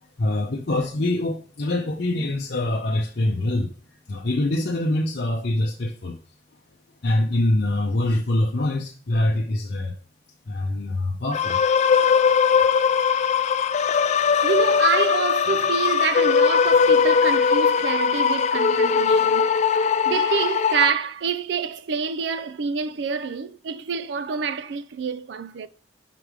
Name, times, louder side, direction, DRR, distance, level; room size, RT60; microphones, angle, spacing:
voice 1, 0.2-3.7 4.1-6.2 7.0-10.0 10.5-11.6, left 1 dB, 60° left, 0.7 m, -24 dB
sound 1, 11.3-20.9, left 6 dB, 40° left, 0.3 m, -20 dB
voice 2, 14.4-19.5 19.8-25.7, right 6 dB, 70° right, 0.4 m, -27 dB
5.8 x 3.3 x 5.0 m
head